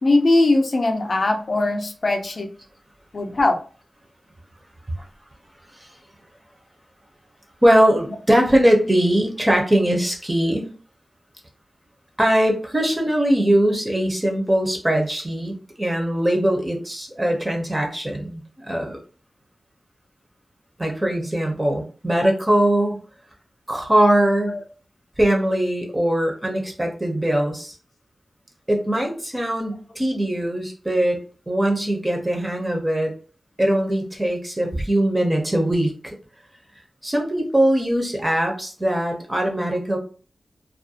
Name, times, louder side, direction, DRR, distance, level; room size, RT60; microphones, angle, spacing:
voice 1, 0.0-2.5 3.1-3.6 24.4-24.6, left 2 dB, 50° left, 4 dB, 0.4 m, -20 dB
voice 2, 7.6-10.6 12.2-19.0 20.8-23.0 23.7-24.6 25.2-27.7 28.7-31.2 31.5-33.1 33.6-36.1 37.0-40.0, right 1 dB, 20° right, 1 dB, 0.5 m, -21 dB
2.3 x 2.0 x 2.6 m, 0.39 s
wide cardioid pair, 115°, 0 cm